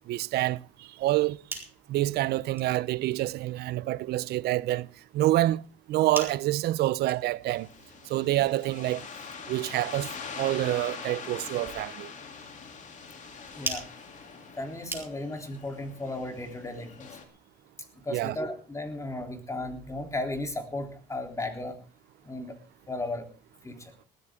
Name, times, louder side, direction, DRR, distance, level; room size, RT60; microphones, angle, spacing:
voice 1, 0.1-1.4 1.9-4.9 5.1-7.7 8.1-9.1 9.5-12.1 18.1-18.4, right 15 dB, 70° right, 0.6 m, -27 dB
sound 1, 1.1-15.5, right 3 dB, 15° right, 4.5 m, -45 dB
sound 2, 7.5-17.2, left 5 dB, 45° left, 3.0 m, -43 dB
voice 2, 13.5-13.9 14.6-17.2 18.0-21.8 22.2-22.5 22.9-23.3 23.6-23.9, left 2 dB, 20° left, 3.4 m, -35 dB
19.0 x 14.0 x 3.7 m
cardioid pair, 110°, 17 cm